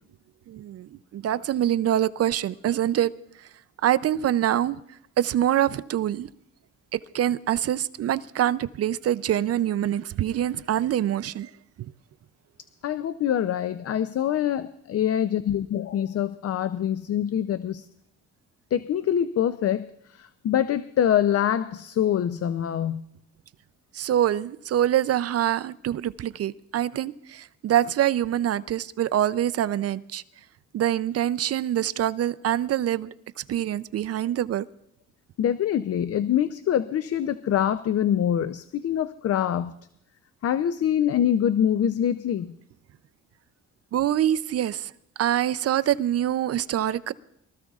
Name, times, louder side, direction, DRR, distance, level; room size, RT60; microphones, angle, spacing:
voice 1, 0.5-3.1 3.8-4.8 5.2-6.3 6.9-11.5 23.9-30.2 30.7-33.1 33.5-34.6 43.9-44.9 45.2-47.1, right 11 dB, 55° right, 0.5 m, -25 dB
voice 2, 12.8-17.9 18.7-19.9 20.1-23.1 35.4-39.7 40.4-42.5, left 10 dB, 50° left, 0.6 m, -25 dB
23.5 x 14.5 x 2.4 m
cardioid pair, 90°, 30 cm